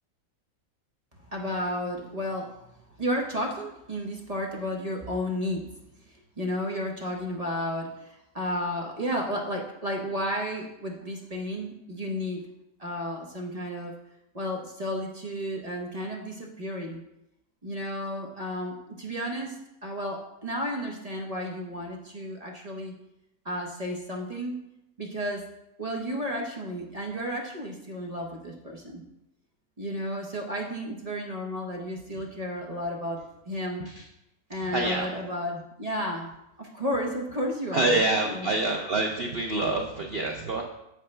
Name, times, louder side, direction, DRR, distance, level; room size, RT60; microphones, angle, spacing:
voice 1, 1.3-5.6 6.0-12.4 12.8-13.9 14.3-17.0 17.6-22.9 23.4-24.6 25.0-25.4 25.8-29.0 29.8-33.2 33.5-33.9 34.5-36.3 36.6-38.5, equal, 35° right, -1 dB, 0.6 m, -32 dB
voice 2, 34.7-35.2 37.7-40.6, right 2 dB, 85° right, 2 dB, 0.5 m, -26 dB
7.6 x 6.5 x 3.2 m, 0.86 s
omnidirectional pair, 1.9 m